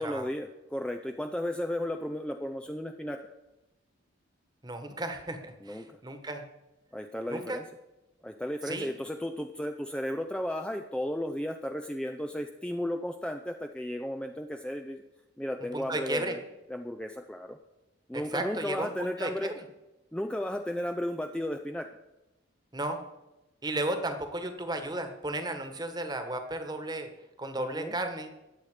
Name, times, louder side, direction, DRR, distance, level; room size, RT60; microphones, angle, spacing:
voice 1, 0.0-3.2 5.6-6.0 6.9-7.6 8.2-15.0 15.4-16.4 16.7-17.6 18.1-19.5 20.1-21.9 27.6-27.9, left 1 dB, 5° left, 5 dB, 0.5 m, -34 dB
voice 2, 4.6-6.4 7.3-7.6 8.6-8.9 15.7-16.4 18.1-19.6 22.7-23.0 23.6-27.1 27.4-28.3, right 1 dB, 20° right, 7 dB, 1.4 m, -34 dB
21.0 x 8.0 x 5.0 m, 0.99 s
head